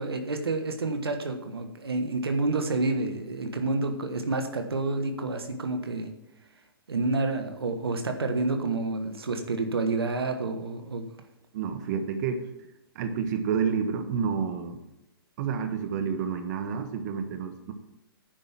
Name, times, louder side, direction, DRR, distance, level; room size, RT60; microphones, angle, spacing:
voice 1, 0.0-6.1 6.9-11.0, right 3 dB, 85° right, 6 dB, 1.4 m, -29 dB
voice 2, 11.5-12.4 12.9-14.8 15.4-17.7, right 6 dB, 45° right, 7 dB, 1.2 m, -29 dB
10.5 x 5.4 x 7.3 m, 0.92 s
hypercardioid pair, 125°, 13 cm